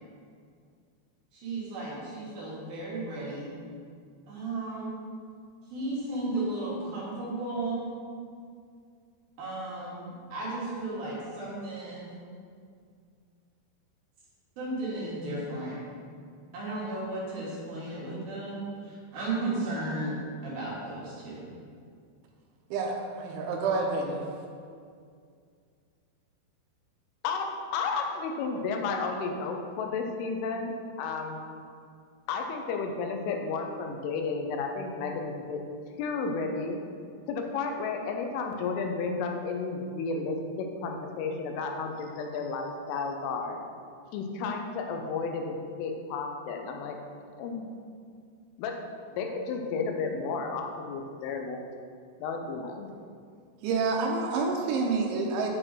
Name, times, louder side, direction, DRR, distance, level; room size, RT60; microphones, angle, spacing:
voice 1, 1.3-3.5 4.3-4.9 5.7-7.9 9.4-10.0 10.3-12.1 14.6-15.8 16.5-20.2 20.4-21.4, right 2 dB, 60° right, -7 dB, 3.1 m, -34 dB
voice 2, 22.7-24.2 53.6-55.5, right 4 dB, 80° right, 1 dB, 3.1 m, -28 dB
voice 3, 27.2-31.4 32.3-35.6 36.0-36.8 37.3-43.6 44.1-47.0 47.4-47.7 48.6-48.8 49.2-51.6 52.2-52.9, left 4 dB, 85° left, 3 dB, 3.3 m, -32 dB
8.9 x 4.4 x 5.7 m, 2.2 s
omnidirectional pair, 5.5 m